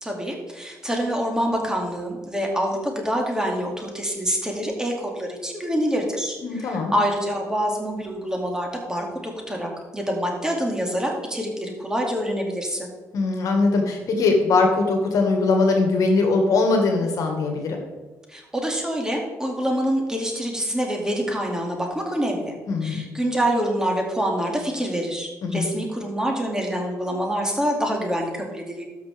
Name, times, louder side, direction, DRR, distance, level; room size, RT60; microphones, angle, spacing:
voice 1, 0.0-12.9 18.3-22.6 22.8-28.9, equal, 10° right, 1 dB, 2.2 m, -26 dB
voice 2, 6.4-6.9 13.1-17.8 22.7-23.1 25.4-25.7, left 3 dB, 65° left, 3 dB, 1.6 m, -21 dB
13.0 x 6.0 x 3.4 m, 1.2 s
supercardioid pair, 65°, 6 cm